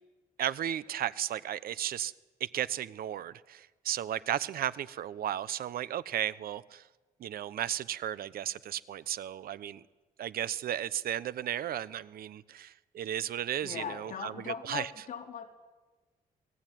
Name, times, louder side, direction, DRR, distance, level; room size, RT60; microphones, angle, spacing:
voice 1, 0.4-2.1 2.4-6.9 7.2-9.8 10.2-14.9, right 11 dB, 80° right, 16 dB, 0.9 m, -34 dB
voice 2, 13.6-15.5, left 7 dB, 65° left, 1 dB, 4.1 m, -39 dB
27.5 x 20.0 x 9.3 m, 1.2 s
wide cardioid pair, 150°, 15 cm